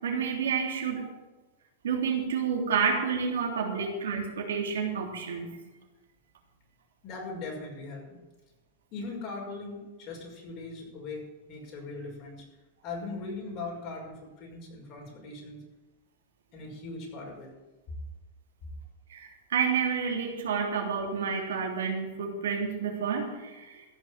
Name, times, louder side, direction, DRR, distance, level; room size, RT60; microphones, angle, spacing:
voice 1, 0.0-1.0 1.8-5.5 19.1-23.8, right 6 dB, 90° right, 1 dB, 3.4 m, -29 dB
voice 2, 7.0-8.0 8.9-12.4 12.8-15.6 16.5-17.5, left 3 dB, 45° left, -2 dB, 5.8 m, -40 dB
15.0 x 6.2 x 9.1 m, 1.1 s
hypercardioid pair, 125°, 0 cm